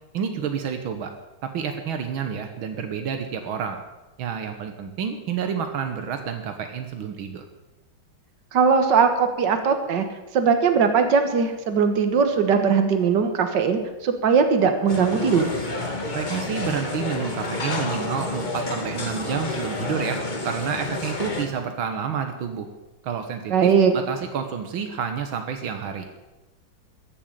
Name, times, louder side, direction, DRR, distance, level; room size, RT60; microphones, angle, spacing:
voice 1, 0.1-1.1 1.4-3.8 4.2-7.4 16.1-22.7 23.0-26.1, right 7 dB, 80° right, 6 dB, 1.9 m, -29 dB
voice 2, 8.5-10.1 10.3-15.5 23.5-23.9, right 6 dB, 60° right, 7 dB, 2.0 m, -20 dB
sound 1, 14.9-21.5, left 2 dB, 25° left, 1.5 m, -29 dB
14.0 x 8.0 x 8.9 m, 1.1 s
omnidirectional pair, 2.2 m